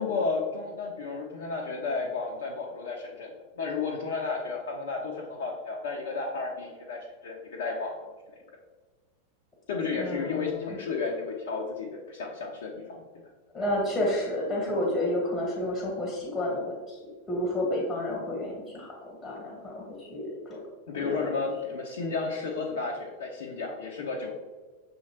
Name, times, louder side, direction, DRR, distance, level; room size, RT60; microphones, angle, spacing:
voice 1, 0.0-7.9 8.3-8.4 9.7-13.0 20.9-24.3, left 4 dB, 60° left, -1 dB, 0.5 m, -32 dB
voice 2, 9.9-10.8 13.5-17.0 17.3-20.6 21.0-21.5, left 1 dB, 10° left, -2 dB, 1.2 m, -31 dB
6.2 x 2.8 x 2.9 m, 1.3 s
figure-of-eight pair, 90°, 0 cm